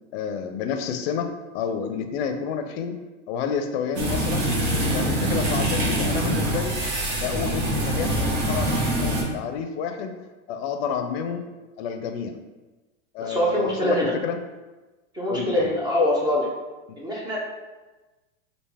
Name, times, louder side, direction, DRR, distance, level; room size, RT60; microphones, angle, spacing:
voice 1, 0.1-1.3 1.5-3.0 3.3-4.5 4.9-6.8 7.1-10.1 10.5-11.5 11.8-12.4 13.1-14.4 15.3-15.7, left 7 dB, 55° left, 6 dB, 0.5 m, -30 dB
sound 1, 3.9-9.2, right 1 dB, 70° right, 1.2 m, -24 dB
voice 2, 13.2-14.1 15.1-16.5 17.0-17.4, left 1 dB, 10° right, -4 dB, 0.4 m, -23 dB
3.3 x 2.5 x 3.3 m, 1.2 s
supercardioid pair, 125°, 38 cm